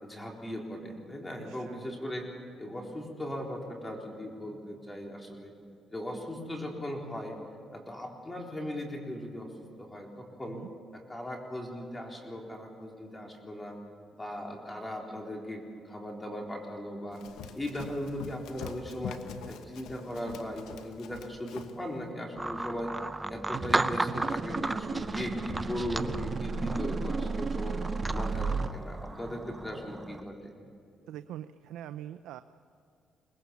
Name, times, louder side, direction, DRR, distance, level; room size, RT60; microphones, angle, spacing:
voice 1, 0.0-2.3 2.6-5.5 5.9-7.4 7.7-9.5 9.8-10.6 10.9-13.8 14.1-17.2 17.5-19.2 19.5-22.9 23.3-27.8 28.1-30.5, equal, 15° left, 0 dB, 3.8 m, -38 dB
voice 2, 1.4-1.8 10.4-10.7 31.1-32.4, right 11 dB, 90° right, 11 dB, 0.5 m, -43 dB
Run, 17.1-21.8, left 7 dB, 90° left, 1.2 m, -44 dB
sound 1, 22.4-30.2, right 2 dB, 15° right, 0.7 m, -35 dB
sound 2, 23.5-28.7, right 4 dB, 35° right, 1.3 m, -34 dB
23.0 x 20.0 x 7.2 m, 2.4 s
cardioid pair, 90°, 0 cm